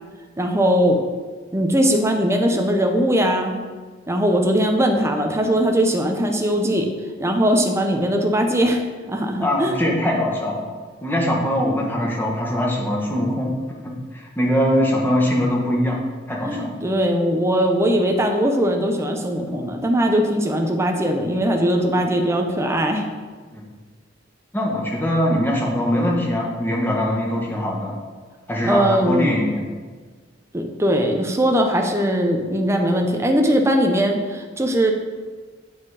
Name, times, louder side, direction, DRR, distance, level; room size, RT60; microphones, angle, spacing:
voice 1, 0.4-1.0 1.5-3.6 4.1-6.9 7.2-8.8 9.1-9.7 16.4-23.0 28.6-29.4 30.5-34.9, equal, 15° right, 2 dB, 0.8 m, -20 dB
voice 2, 9.4-10.7 11.0-13.5 13.8-16.0 16.3-16.8 23.5-23.6 24.5-27.9 28.5-29.6, equal, 10° left, -2 dB, 1.3 m, -22 dB
8.4 x 5.0 x 4.9 m, 1.4 s
head